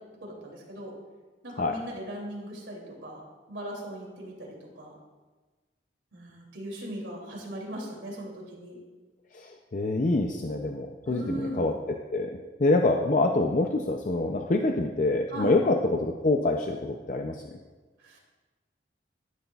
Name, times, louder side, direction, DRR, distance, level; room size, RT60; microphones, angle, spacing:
voice 1, 0.2-0.9 1.4-3.2 3.5-5.0 6.1-8.8 11.0-11.7 15.3-15.5 18.0-18.2, right 1 dB, 85° right, -2 dB, 2.8 m, -38 dB
voice 2, 9.3-11.7 12.1-12.3 12.6-17.4, left 2 dB, 40° left, 3 dB, 0.5 m, -26 dB
12.5 x 10.5 x 2.4 m, 1.3 s
head